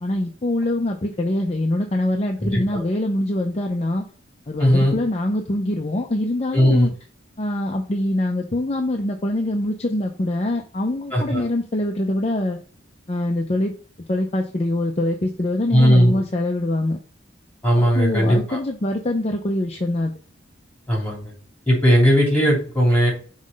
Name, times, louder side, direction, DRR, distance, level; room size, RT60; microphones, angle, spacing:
voice 1, 0.0-4.0 4.5-6.9 7.4-12.6 13.1-13.7 14.1-17.0 17.8-20.1, left 1 dB, 35° left, 2 dB, 0.6 m, -24 dB
voice 2, 2.4-2.8 4.6-4.9 6.5-6.9 11.1-11.4 15.7-16.2 17.6-18.6 20.9-21.2 21.7-23.1, equal, 10° left, -3 dB, 3.1 m, -17 dB
5.7 x 3.2 x 5.2 m, 0.41 s
head